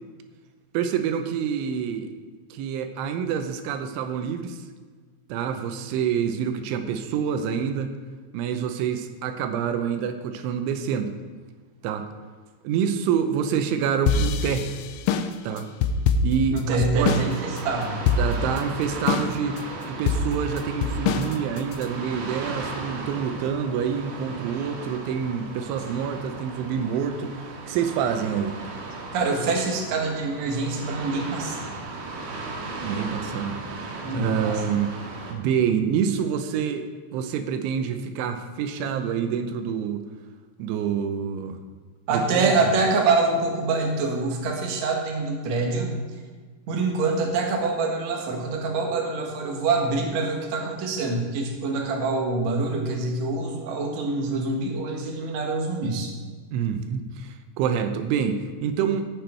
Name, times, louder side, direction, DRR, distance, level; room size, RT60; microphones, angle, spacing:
voice 1, 0.7-2.1 2.5-4.6 5.3-7.9 8.3-11.1 11.8-12.1 12.6-14.7 15.4-15.7 16.2-17.2 18.2-19.6 19.9-28.6 32.8-33.6 34.1-34.9 35.3-36.9 37.1-40.0 40.6-41.6 42.1-42.5 56.5-59.1, right 7 dB, 85° right, 7 dB, 3.3 m, -27 dB
sound 1, 14.1-17.3 17.6-17.7 18.1-18.6 19.1-19.6 20.1-21.8, left 5 dB, 90° left, 3.1 m, -24 dB
voice 2, 16.5-18.0 29.1-31.7 34.0-34.6 42.1-45.9 46.7-56.1, right 3 dB, 55° right, 0 dB, 2.2 m, -25 dB
sound 2, 16.9-35.3, right 3 dB, 70° right, 3.3 m, -36 dB
17.0 x 6.9 x 4.5 m, 1.5 s
omnidirectional pair, 5.3 m